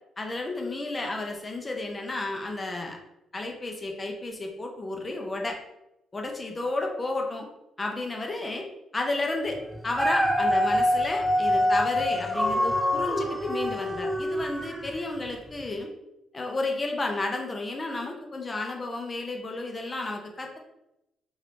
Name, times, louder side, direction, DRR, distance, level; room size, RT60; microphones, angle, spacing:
voice 1, 0.2-3.0 3.3-5.6 6.1-7.5 7.8-8.7 8.9-9.6 9.8-15.9 16.3-20.6, left 2 dB, 25° left, 2 dB, 0.8 m, -32 dB
Dog, 9.7-15.1 15.6-15.7, left 1 dB, 5° right, 0.4 m, -25 dB
3.1 x 3.0 x 4.2 m, 0.89 s
cardioid pair, 90°, 0 cm